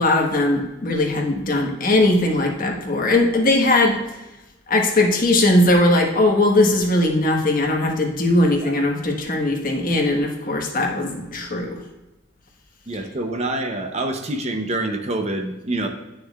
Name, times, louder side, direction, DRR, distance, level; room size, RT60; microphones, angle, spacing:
voice 1, 0.0-4.0 4.7-11.8, left 2 dB, 45° left, 1 dB, 1.4 m, -19 dB
voice 2, 12.9-15.9, right 2 dB, 35° right, 5 dB, 0.7 m, -26 dB
9.9 x 6.4 x 2.4 m, 1.0 s
head